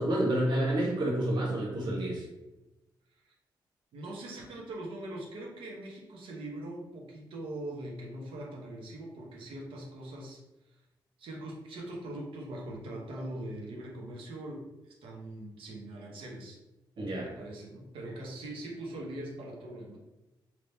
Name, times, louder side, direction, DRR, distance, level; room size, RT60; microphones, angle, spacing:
voice 1, 0.0-2.2 17.0-17.3, right 1 dB, 60° right, -3 dB, 1.3 m, -29 dB
voice 2, 3.9-10.4 10.7-10.8 11.2-16.6 17.2-20.0, right 1 dB, 80° right, -1 dB, 0.9 m, -42 dB
3.4 x 2.9 x 2.7 m, 0.99 s
cardioid pair, 125°, 9 cm